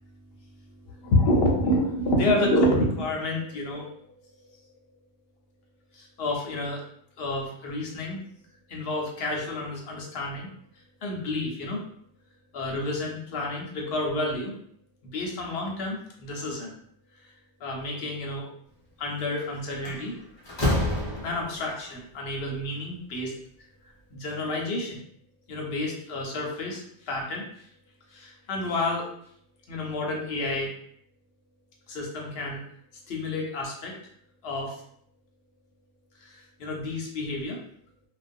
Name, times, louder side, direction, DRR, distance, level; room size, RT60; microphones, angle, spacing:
voice 1, 0.9-3.9 4.4-4.5 5.9-6.8 7.2-8.2 8.7-10.5 11.0-11.8 12.5-14.5 15.0-16.8 17.2-17.3 17.6-18.5 19.0-20.1 21.2-23.4 24.1-25.0 25.5-27.7 28.1-29.1 29.7-30.7 31.9-32.6 33.1-34.0 34.4-34.8 36.2-37.6, left 1 dB, 60° left, -1 dB, 0.8 m, -29 dB
Slam, 19.2-19.4 19.8-21.7, left 1 dB, 35° left, 0.4 m, -28 dB
2.3 x 2.2 x 2.5 m, 0.66 s
omnidirectional pair, 1.3 m